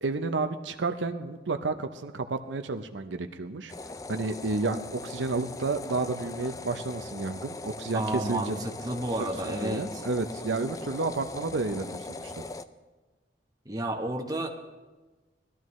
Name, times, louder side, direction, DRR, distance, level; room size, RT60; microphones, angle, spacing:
voice 1, 0.0-3.7 4.1-8.6 9.2-12.4, right 3 dB, 90° right, 7 dB, 0.7 m, -31 dB
sound 1, 3.7-12.7, left 3 dB, 20° left, 0.3 m, -40 dB
voice 2, 7.9-10.0 13.6-14.5, right 1 dB, 20° right, 2 dB, 1.0 m, -31 dB
20.0 x 12.5 x 3.2 m, 1.3 s
head